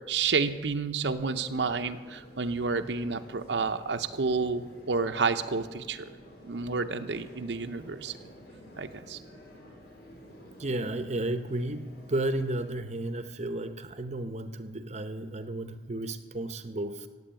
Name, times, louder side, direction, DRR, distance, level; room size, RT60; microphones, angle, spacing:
voice 1, 0.1-6.1 6.4-8.2 8.8-9.2, right 4 dB, 80° right, 6 dB, 0.7 m, -30 dB
sound 1, 1.1-12.7, equal, 60° left, 3.1 m, -51 dB
voice 2, 10.6-17.1, right 1 dB, 40° right, 10 dB, 0.8 m, -33 dB
15.5 x 8.5 x 9.0 m, 1.4 s
head